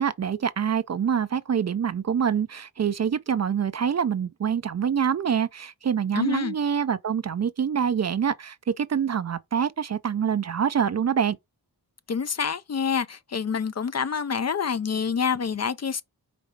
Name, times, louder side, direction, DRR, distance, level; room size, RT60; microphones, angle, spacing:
voice 1, 0.0-11.4, right 7 dB, 45° right, 0.4 m, -25 dB
voice 2, 6.1-6.5 12.1-16.0, left 6 dB, 40° left, 0.5 m, -27 dB
5.1 x 3.1 x 3.2 m
cardioid pair, 50°, 40 cm